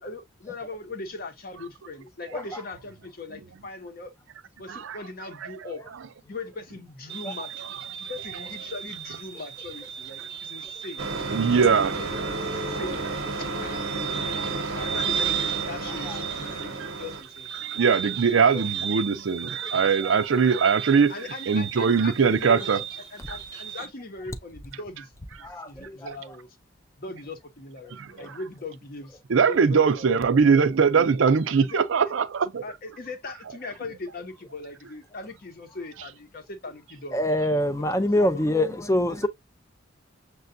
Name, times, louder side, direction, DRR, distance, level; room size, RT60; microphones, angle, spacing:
voice 1, 0.0-4.1 4.6-5.8 6.2-7.5 8.1-11.0 11.4-13.0 13.4-14.1 14.7-17.5 18.5-18.8 21.1-22.8 23.1-25.1 25.4-26.5 27.0-30.4 31.6-31.8 32.6-37.2 37.9-38.5, left 3 dB, 45° left, 0.8 m, -40 dB
sound 1, 7.1-23.9, right 8 dB, 20° right, 0.7 m, -35 dB
sound 2, 11.0-17.2, right 3 dB, 90° right, 0.9 m, -32 dB
voice 2, 11.3-12.0 12.7-12.8 14.4-14.7 16.8-16.9 17.6-21.1 21.5-22.8 23.3-23.4 27.9-28.1 29.3-32.6, right 5 dB, 65° right, 0.5 m, -21 dB
voice 3, 12.2-12.8 13.5-13.7 16.1-16.2 19.6-19.7 25.4-26.1 37.1-39.3, left 1 dB, 15° left, 0.4 m, -25 dB
6.7 x 2.3 x 2.5 m
head